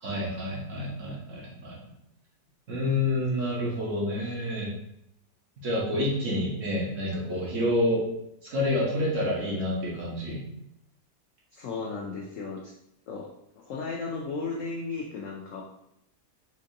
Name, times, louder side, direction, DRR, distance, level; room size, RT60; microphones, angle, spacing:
voice 1, 0.0-1.8 2.7-4.7 5.6-8.0 8.5-10.4, left 1 dB, 50° right, -5 dB, 1.2 m, -28 dB
voice 2, 11.5-12.7 13.1-13.3 13.6-15.6, left 4 dB, 80° left, -1 dB, 0.7 m, -35 dB
4.6 x 2.6 x 2.6 m, 0.78 s
omnidirectional pair, 1.9 m